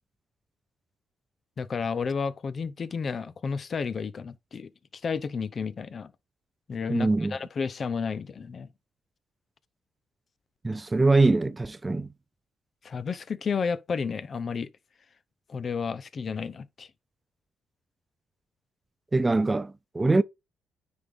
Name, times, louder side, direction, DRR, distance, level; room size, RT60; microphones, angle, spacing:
voice 1, 1.6-4.7 5.0-6.1 6.7-8.7 12.8-14.7 15.5-16.9, left 5 dB, 45° left, 0.6 m, -31 dB
voice 2, 6.9-7.3 10.6-12.1 19.1-20.2, right 2 dB, 20° right, 0.4 m, -23 dB
9.6 x 3.5 x 3.5 m
cardioid pair, 90°, 0 cm